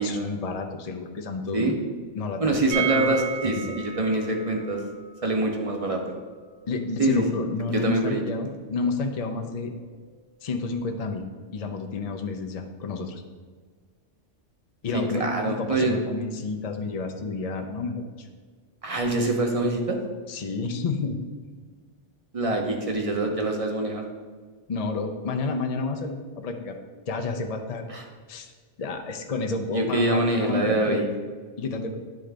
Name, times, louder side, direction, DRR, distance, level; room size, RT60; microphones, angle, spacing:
voice 1, 0.0-1.6 2.1-3.1 3.4-3.8 6.7-9.7 10.4-13.2 14.8-18.3 20.3-21.2 24.7-26.8 27.1-27.8 28.3-28.5 28.8-31.1 31.6-32.0, left 3 dB, 50° left, 4 dB, 0.5 m, -30 dB
voice 2, 2.4-4.8 5.2-6.0 7.0-7.2 7.7-8.2 14.9-16.0 18.8-20.0 22.3-24.0 27.9-28.0 29.7-31.0, right 2 dB, 35° right, 2 dB, 0.7 m, -25 dB
sound 1, 2.7-8.5 8.7-8.8 9.1-9.2, right 7 dB, 55° right, 1.1 m, -35 dB
10.5 x 3.8 x 3.4 m, 1.5 s
omnidirectional pair, 1.2 m